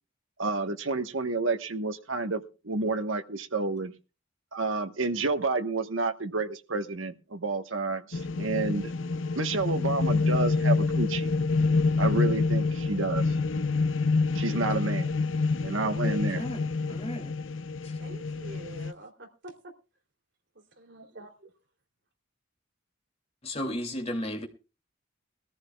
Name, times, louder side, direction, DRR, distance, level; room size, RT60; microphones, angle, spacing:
voice 1, 0.4-3.9 4.5-8.9 9.3-11.3 12.0-13.3 14.3-15.1 15.6-16.4, right 3 dB, 80° right, 1.3 m, -30 dB
sound 1, 8.1-18.9, left 3 dB, 75° left, 0.7 m, -27 dB
voice 2, 16.0-17.3 17.8-18.0 23.4-24.5, equal, 30° left, 2.6 m, -35 dB
voice 3, 18.0-19.7 20.5-21.5, right 2 dB, 60° right, 3.1 m, -47 dB
22.0 x 14.0 x 2.3 m
head